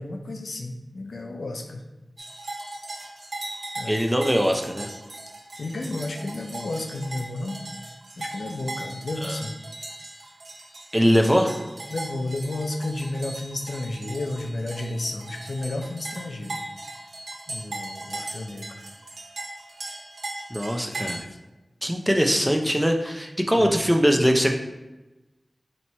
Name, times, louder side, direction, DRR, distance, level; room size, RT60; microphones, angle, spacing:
voice 1, 0.0-1.8 3.8-4.0 5.6-7.6 8.2-9.5 11.9-16.6 17.5-18.8 23.6-23.7, left 2 dB, 85° left, 3 dB, 0.4 m, -32 dB
sound 1, 2.2-21.2, right 2 dB, 85° right, 0.6 m, -38 dB
voice 2, 3.9-4.9 9.2-9.4 10.9-11.6 20.5-21.3 21.8-24.5, equal, 5° right, 3 dB, 0.4 m, -21 dB
3.0 x 2.8 x 4.4 m, 1.0 s
wide cardioid pair, 75°, 0 cm